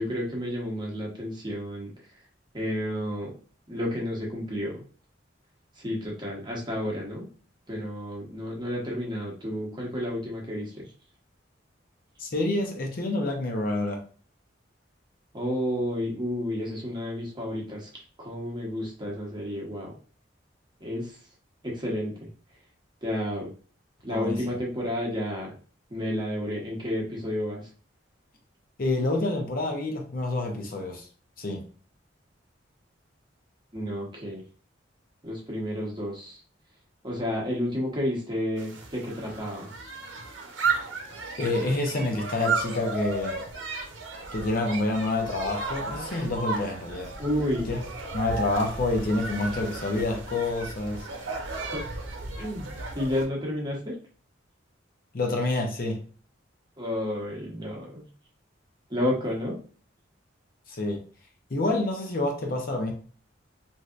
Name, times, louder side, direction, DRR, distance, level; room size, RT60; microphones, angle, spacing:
voice 1, 0.0-1.9 2.5-3.4 3.7-4.8 5.8-7.3 7.7-10.9 15.3-17.9 18.2-19.9 20.8-21.2 21.6-22.3 23.0-23.5 24.0-25.5 25.9-27.7 33.7-34.4 35.2-36.4 37.0-39.7 47.2-47.7 51.7-51.8 52.4-52.7 52.9-54.0 56.8-58.1 58.9-59.6, left 1 dB, 25° right, 0.9 m, -31 dB
voice 2, 12.2-14.0 24.1-24.6 28.8-31.1 31.4-31.6 41.4-43.4 44.3-47.1 47.7-47.8 48.1-51.1 55.1-56.0 60.7-61.0 61.5-62.9, left 2 dB, 50° left, 0.7 m, -28 dB
sound 1, 38.6-53.3, right 4 dB, 80° right, 0.7 m, -34 dB
3.2 x 2.7 x 2.4 m
head